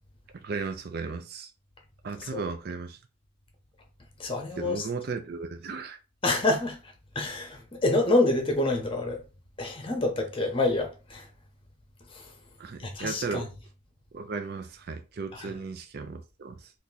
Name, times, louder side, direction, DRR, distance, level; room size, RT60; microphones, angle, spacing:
voice 1, 0.4-1.5 2.0-3.0 4.6-6.0 12.6-13.5 14.1-16.7, right 4 dB, 50° right, 0.4 m, -35 dB
voice 2, 4.2-4.8 6.2-6.8 7.1-9.2 9.6-11.2 12.8-13.4 15.3-15.5, left 2 dB, 25° left, 0.8 m, -27 dB
2.8 x 2.6 x 3.8 m
head